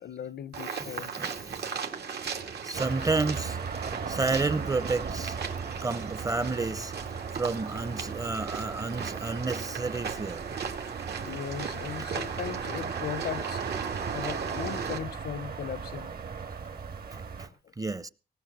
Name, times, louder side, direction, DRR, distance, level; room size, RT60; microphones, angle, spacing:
voice 1, 0.0-1.1 11.2-13.6 14.1-16.1 17.6-17.7, left 9 dB, 80° left, 0.7 m, -37 dB
sound 1, 0.5-15.0, right 6 dB, 85° right, 2.3 m, -37 dB
voice 2, 0.8-1.7 2.6-3.6 4.1-5.4 5.8-6.9 7.3-10.4 17.1-17.5 17.8-18.1, right 3 dB, 20° right, 0.6 m, -31 dB
sound 2, 2.7-17.5, right 5 dB, 65° right, 2.1 m, -38 dB
19.0 x 6.4 x 7.9 m
wide cardioid pair, 130°, 16 cm